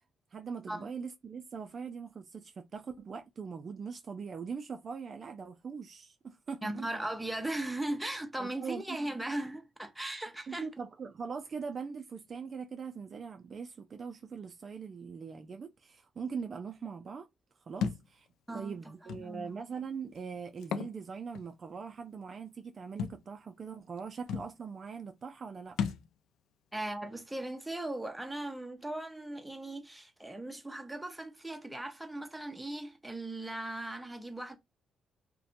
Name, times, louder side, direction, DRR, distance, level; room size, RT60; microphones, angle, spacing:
voice 1, 0.3-6.9 8.4-8.8 10.5-17.3 17.7-18.3 18.5-25.8, right 5 dB, 45° right, 0.3 m, -41 dB
voice 2, 6.6-10.7 18.5-19.6 26.7-34.6, right 1 dB, 5° right, 0.6 m, -38 dB
Thump thud, 17.8-18.1 19.1-19.2 20.6-20.9 21.3-21.4 23.0-23.2 24.0-24.1 24.3-24.5 25.8-26.1, left 7 dB, 85° left, 0.3 m, -33 dB
2.7 x 2.1 x 2.5 m
cardioid pair, 90°, 0 cm